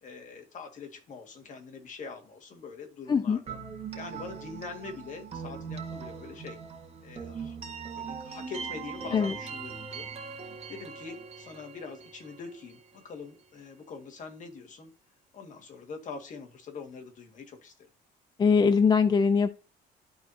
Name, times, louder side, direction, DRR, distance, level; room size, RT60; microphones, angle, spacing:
voice 1, 0.0-3.6 3.9-6.6 7.0-7.6 7.9-10.1 10.4-14.9 15.3-17.9, left 4 dB, 50° left, 3 dB, 1.9 m, -44 dB
voice 2, 3.1-3.4 9.1-9.3 18.4-19.5, left 5 dB, 25° left, 13 dB, 0.4 m, -22 dB
sound 1, 3.5-13.2, right 6 dB, 35° right, 1.7 m, -41 dB
12.0 x 4.2 x 2.7 m, 0.32 s
cardioid pair, 110°, 17 cm